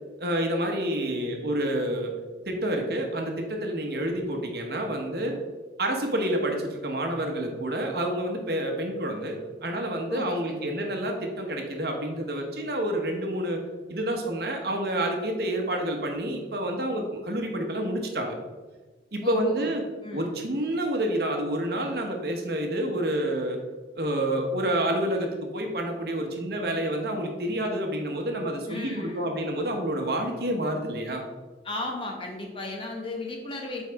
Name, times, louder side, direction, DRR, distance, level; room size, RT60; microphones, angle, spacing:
voice 1, 0.2-2.1 2.5-5.3 5.8-13.6 13.9-18.3 19.1-19.8 20.1-23.6 23.9-31.2, right 1 dB, 55° right, 2 dB, 1.1 m, -28 dB
voice 2, 10.1-10.8 19.2-19.7 20.0-20.3 28.7-29.4 31.6-33.8, left 2 dB, 30° left, 0 dB, 1.1 m, -35 dB
8.1 x 4.7 x 3.5 m, 1.3 s
head